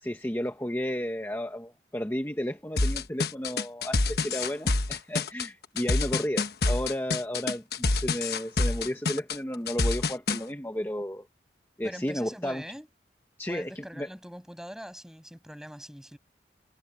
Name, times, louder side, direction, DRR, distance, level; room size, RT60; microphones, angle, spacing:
voice 1, 0.0-11.3 11.8-12.6 13.4-14.1, equal, 10° left, 1.1 m, -33 dB
sound 1, 2.8-10.4, left 3 dB, 60° left, 1.2 m, -27 dB
voice 2, 11.8-12.9 13.5-16.2, equal, 5° right, 6.9 m, -42 dB
head